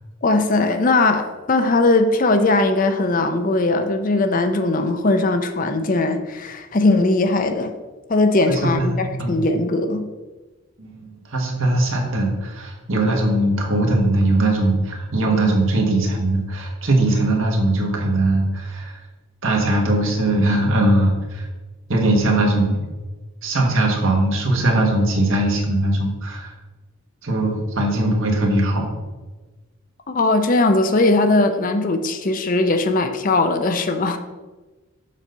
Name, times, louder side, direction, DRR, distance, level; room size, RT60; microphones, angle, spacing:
voice 1, 0.2-7.7 8.1-10.1 30.1-34.2, left 2 dB, 35° left, 7 dB, 0.5 m, -19 dB
voice 2, 8.5-9.4 10.8-19.0 19.4-21.5 21.9-22.8 23.4-26.5 27.2-28.9, right 1 dB, 65° right, 1 dB, 1.5 m, -20 dB
7.3 x 4.0 x 5.5 m, 1.2 s
head